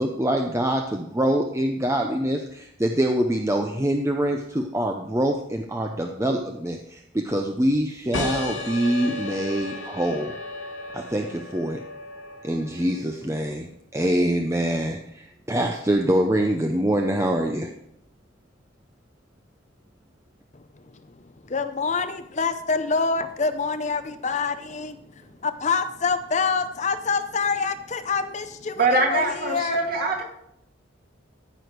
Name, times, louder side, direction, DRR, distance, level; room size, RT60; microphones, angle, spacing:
voice 1, 0.0-10.3 10.9-11.8 12.4-17.7, right 1 dB, 15° right, 3 dB, 0.6 m, -25 dB
sound 1, 8.1-13.3, left 2 dB, 85° left, 2.1 m, -34 dB
voice 2, 21.4-28.8 29.1-29.2 29.5-29.8, left 4 dB, 35° left, 9 dB, 0.6 m, -26 dB
voice 3, 28.7-30.2, right 2 dB, 45° right, 0 dB, 2.4 m, -23 dB
14.5 x 6.3 x 4.7 m, 0.75 s
head